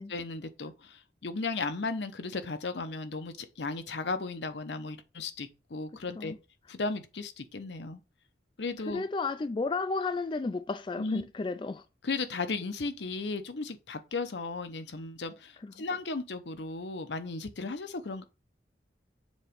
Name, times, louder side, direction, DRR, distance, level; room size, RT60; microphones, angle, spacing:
voice 1, 0.1-6.4 6.7-8.0 8.6-9.0 11.0-11.2 12.0-18.2, left 3 dB, 80° left, 0.8 m, -35 dB
voice 2, 5.9-6.4 8.8-11.9 15.6-15.7, left 3 dB, 25° left, 0.3 m, -33 dB
7.2 x 3.0 x 5.1 m
head